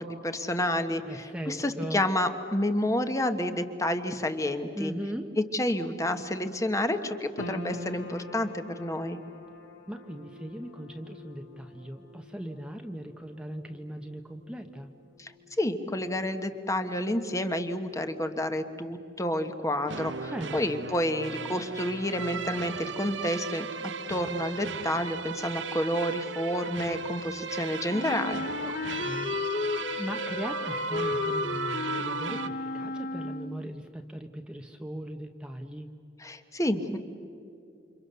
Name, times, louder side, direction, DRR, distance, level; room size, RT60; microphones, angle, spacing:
voice 1, 0.0-4.9 5.4-9.2 15.2-15.3 15.6-23.7 24.1-28.4 36.2-37.0, left 1 dB, 15° left, 8 dB, 1.2 m, -29 dB
voice 2, 1.0-2.1 4.7-5.3 9.9-14.9 20.3-20.6 28.6-35.9, equal, 5° right, 4 dB, 0.9 m, -39 dB
sound 1, 7.4-19.8 20.0-21.0 21.4-21.5, left 1 dB, 75° left, 3.0 m, -47 dB
Path of a Warrior, 19.9-32.5, right 6 dB, 75° right, 1.0 m, -36 dB
Wind instrument woodwind instrument, 27.9-33.7, left 4 dB, 50° left, 0.8 m, -33 dB
29.5 x 27.0 x 6.8 m, 2.5 s
head